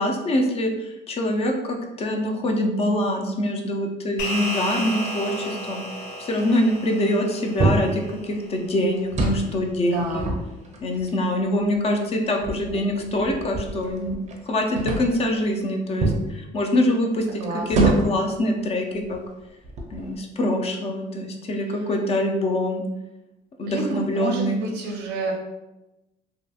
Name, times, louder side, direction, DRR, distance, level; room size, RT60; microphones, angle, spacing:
voice 1, 0.0-5.8 6.2-10.3 10.8-14.1 14.5-19.2 19.9-22.8 23.6-24.6, left 1 dB, 35° left, 3 dB, 0.4 m, -24 dB
sound 1, 4.2-8.8, equal, 85° left, 0.5 m, -33 dB
sound 2, 7.6-8.0 9.0-9.5 10.0-11.0 11.8-11.9 12.4-14.4 14.8-15.2 16.0-16.3 17.7-18.3 19.0-19.2 19.6-20.2, right 2 dB, 40° right, 0.5 m, -25 dB
voice 2, 9.8-10.4 17.3-18.0 23.7-25.3, right 2 dB, 85° right, 1 dB, 0.6 m, -29 dB
2.7 x 2.4 x 2.3 m, 0.99 s
cardioid pair, 110°, 17 cm